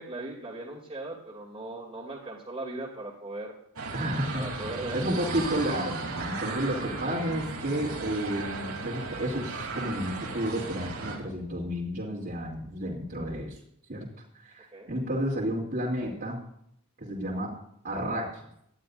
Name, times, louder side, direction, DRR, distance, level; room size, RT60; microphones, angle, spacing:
voice 1, 0.0-3.6 4.3-5.1 14.7-14.9, right 2 dB, 25° right, -6 dB, 2.7 m, -38 dB
sound 1, 3.8-11.2, right 3 dB, 90° right, 3.1 m, -36 dB
voice 2, 3.9-13.6 13.9-14.0 14.3-16.4 17.0-17.5 17.8-18.4, equal, 45° right, -7 dB, 2.9 m, -31 dB
18.5 x 12.0 x 2.6 m, 0.72 s
head